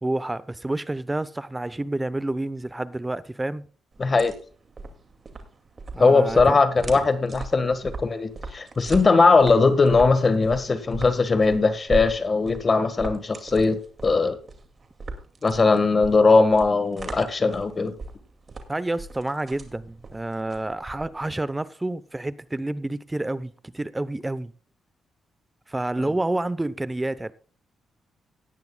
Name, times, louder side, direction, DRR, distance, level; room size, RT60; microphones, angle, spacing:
voice 1, 0.0-3.6 5.9-6.6 6.9-7.0 18.7-24.5 25.7-27.3, right 2 dB, 15° right, 0.8 m, -29 dB
sound 1, 3.9-21.4, right 3 dB, 45° right, 2.3 m, -38 dB
voice 2, 4.0-4.3 6.0-14.4 15.4-17.9, left 4 dB, 35° left, 1.5 m, -20 dB
17.5 x 10.5 x 2.3 m
cardioid pair, 75°, 0 cm